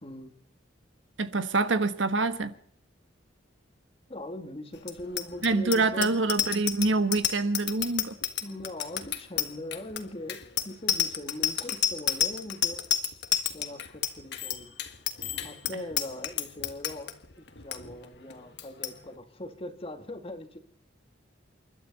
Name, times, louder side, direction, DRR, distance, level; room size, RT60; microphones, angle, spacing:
voice 1, 0.0-0.3 4.1-6.2 8.4-12.8 13.5-14.8 15.4-20.6, left 1 dB, 30° left, 1.9 m, -41 dB
voice 2, 1.2-2.5 5.4-8.1, right 3 dB, 85° right, 1.4 m, -26 dB
Bicycle bell, 4.8-17.1 17.5-17.8 18.0-18.3 18.6-18.9, left 9 dB, 65° left, 1.6 m, -30 dB
sound 1, 5.0-5.1 5.3-5.6 6.0-6.1 6.4-6.5 6.8-7.4 7.8-7.9 8.2-8.3 8.6-8.7 9.0-9.6 9.9-10.1 10.4-10.7 10.9-11.2 11.4-11.6 11.9-18.0, left 1 dB, 85° left, 2.1 m, -51 dB
29.0 x 12.0 x 4.1 m
head